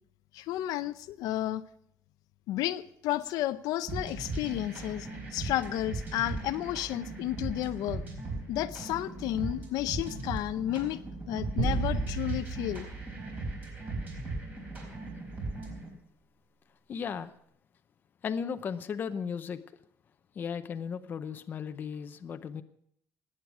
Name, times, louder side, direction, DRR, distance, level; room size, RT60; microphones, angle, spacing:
voice 1, 0.3-1.6 2.5-8.0 8.5-11.0 11.3-12.9, left 13 dB, 75° left, 11 dB, 0.7 m, -32 dB
sound 1, 3.9-15.9, right 2 dB, 25° right, 4.2 m, -38 dB
sound 2, 11.6-14.2, right 4 dB, 90° right, 7.5 m, -33 dB
voice 2, 16.9-17.3 18.2-19.6 20.4-22.6, left 6 dB, 30° left, 9 dB, 0.7 m, -35 dB
19.5 x 8.9 x 6.1 m, 0.70 s
cardioid pair, 180°, 6 cm